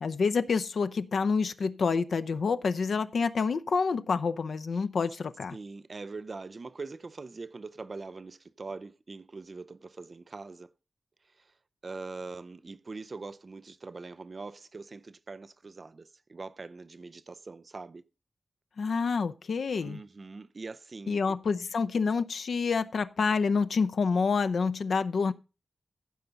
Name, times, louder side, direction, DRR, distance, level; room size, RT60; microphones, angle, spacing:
voice 1, 0.0-5.6 18.8-20.0 21.1-25.3, left 5 dB, 70° left, 0.6 m, -28 dB
voice 2, 5.5-10.7 11.3-11.5 11.8-18.1 19.8-21.2, right 3 dB, 35° right, 0.5 m, -42 dB
15.0 x 5.8 x 3.9 m
wide cardioid pair, 175°, 0 cm